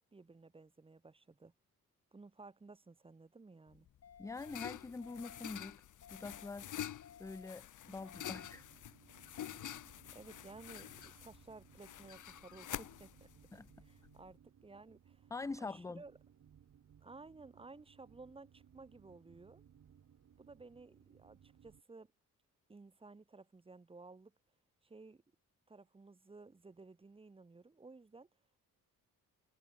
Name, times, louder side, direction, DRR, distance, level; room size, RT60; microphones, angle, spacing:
voice 1, 0.0-1.5 2.1-3.9 10.1-13.3 13.8-15.3 15.6-16.1 17.0-19.6 20.4-22.1 22.7-24.3 24.8-25.2 25.7-28.3, right 3 dB, 15° right, 1.2 m, -56 dB
sound 1, 3.7-14.3, left 11 dB, 60° left, 1.7 m, -48 dB
sound 2, 4.0-4.5 5.0-5.5 6.0-6.5 7.0-7.5 8.0-8.5, left 7 dB, 45° left, 4.1 m, -57 dB
voice 2, 4.2-5.8 6.1-6.7 7.2-8.7 13.5-13.7 15.3-16.0, left 3 dB, 10° left, 0.4 m, -44 dB
sound 3, 7.8-21.8, right 8 dB, 50° right, 3.9 m, -64 dB
cardioid pair, 130°, 34 cm